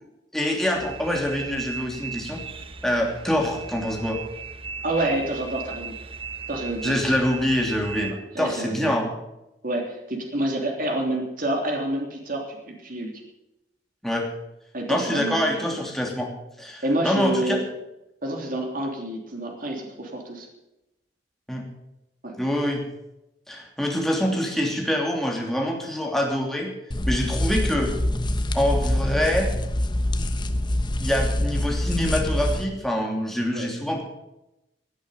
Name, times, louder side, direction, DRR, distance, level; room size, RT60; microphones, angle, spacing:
voice 1, 0.3-2.4 2.8-4.2 6.8-9.1 14.0-14.3 14.9-16.3 16.6-17.6 21.5-21.6 22.4-22.8 23.5-26.7 27.1-27.9 28.5-29.5 31.0-34.0, equal, ahead, 0 dB, 3.0 m, -25 dB
sound 1, 0.7-8.1, right 5 dB, 30° right, 1.0 m, -37 dB
voice 2, 4.8-5.9 6.5-7.0 8.3-8.9 9.6-13.2 14.7-15.6 16.8-17.6 18.2-20.5 22.2-22.3 33.5-33.7, right 1 dB, 50° right, 1 dB, 3.2 m, -28 dB
sound 2, 26.9-32.6, left 1 dB, 25° left, 1.0 m, -25 dB
17.5 x 9.0 x 7.0 m, 0.91 s
head